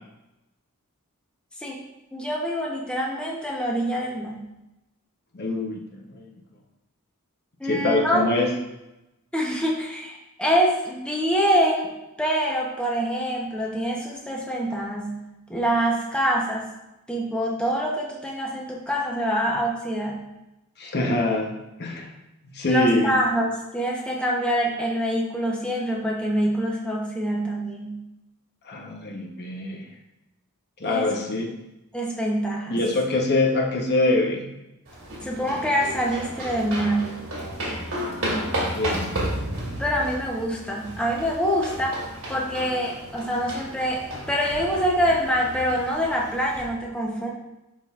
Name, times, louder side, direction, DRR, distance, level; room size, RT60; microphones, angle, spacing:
voice 1, 2.1-4.4 7.6-8.5 9.3-11.9 12.2-15.2 15.5-16.7 17.1-20.2 22.7-28.0 30.8-31.1 31.9-32.8 35.2-37.1 39.8-42.0 42.3-47.3, equal, 5° left, -3 dB, 0.8 m, -25 dB
voice 2, 5.3-6.3 7.6-8.5 20.8-22.1 22.5-23.2 28.6-29.9 30.8-31.5 32.7-34.5 38.7-39.2, left 2 dB, 50° left, 1 dB, 0.9 m, -24 dB
sound 1, 34.9-46.6, right 1 dB, 65° right, 2.3 m, -33 dB
11.0 x 3.7 x 2.4 m, 0.93 s
head